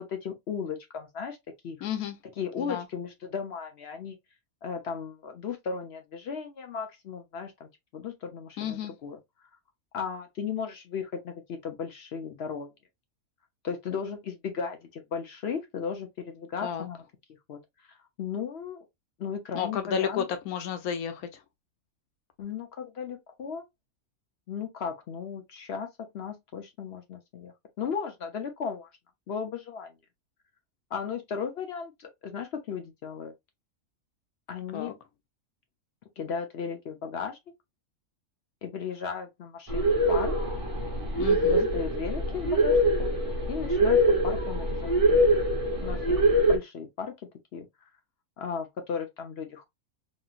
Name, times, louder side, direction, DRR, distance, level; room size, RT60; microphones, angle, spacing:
voice 1, 0.0-1.4 1.6-1.8 2.4-4.2 4.6-9.2 9.9-12.7 13.6-17.0 17.5-17.6 17.9-18.8 19.2-20.2 22.4-23.6 24.5-25.9 26.1-28.9 29.3-29.9 30.9-33.3 34.5-34.9 36.2-37.4 38.6-40.3 41.5-43.1 43.5-45.2 45.8-47.1 47.5-47.7 48.4-49.6, left 6 dB, 60° left, 0.7 m, -36 dB
voice 2, 1.8-2.2 2.6-2.9 8.6-8.9 16.6-16.9 19.5-21.3 34.7-34.9 41.2-41.7, left 8 dB, 85° left, 1.2 m, -32 dB
sound 1, 39.7-46.6, equal, 35° right, 0.6 m, -24 dB
3.0 x 2.6 x 2.3 m
omnidirectional pair, 1.5 m